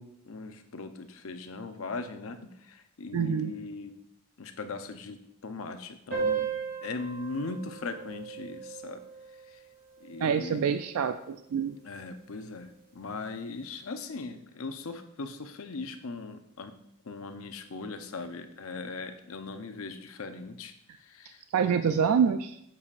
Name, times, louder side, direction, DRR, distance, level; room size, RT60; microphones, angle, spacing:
voice 1, 0.0-3.9 4.4-6.5 6.8-9.0 9.5-9.6 10.0-10.6 11.8-16.7 17.1-20.7 21.0-21.4 21.9-22.1, left 3 dB, 65° left, 8 dB, 0.6 m, -39 dB
voice 2, 3.1-3.5 10.2-11.8 21.5-22.6, right 7 dB, 80° right, 9 dB, 0.3 m, -26 dB
sound 1, 6.1-11.1, right 5 dB, 45° right, 2.2 m, -36 dB
8.4 x 6.9 x 2.4 m, 0.75 s
head